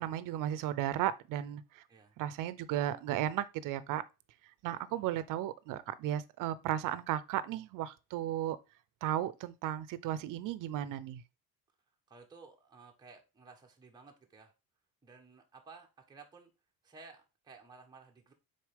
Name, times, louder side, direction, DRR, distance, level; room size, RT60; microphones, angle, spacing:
voice 1, 0.0-1.8 2.2-4.0 4.6-8.6 9.0-11.2, right 12 dB, 65° right, 0.7 m, -35 dB
voice 2, 4.7-5.1 12.1-14.5 15.0-16.5 16.8-18.3, right 4 dB, 10° right, 1.1 m, -55 dB
6.4 x 4.4 x 3.4 m
cardioid pair, 150°, 35 cm